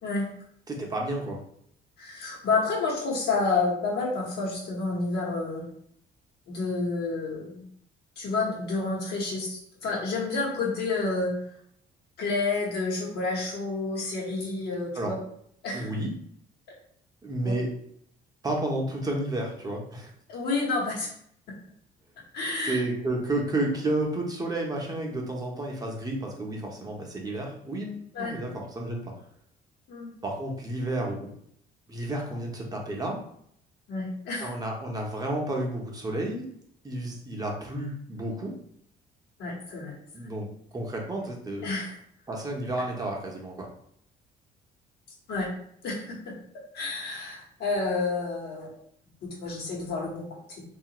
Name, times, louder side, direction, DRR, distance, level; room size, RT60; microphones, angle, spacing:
voice 1, 0.7-1.4 14.9-15.1 15.7-16.1 17.2-17.7 18.4-20.1 22.6-29.1 30.2-31.3 31.9-33.2 34.4-36.5 36.8-38.5 40.1-40.5 40.7-41.7 42.3-43.7, right 1 dB, 20° right, -1 dB, 0.7 m, -31 dB
voice 2, 2.0-5.7 6.5-7.6 8.2-11.3 12.2-15.2 15.6-15.9 17.4-17.5 20.3-21.1 22.3-22.8 28.1-28.4 29.9-30.1 33.9-34.5 39.4-39.9 41.6-42.0 45.3-45.5 45.8-46.3 46.7-48.7 49.2-50.6, left 3 dB, 70° left, -3 dB, 1.0 m, -29 dB
2.7 x 2.4 x 2.8 m, 0.67 s
cardioid pair, 110°, 17 cm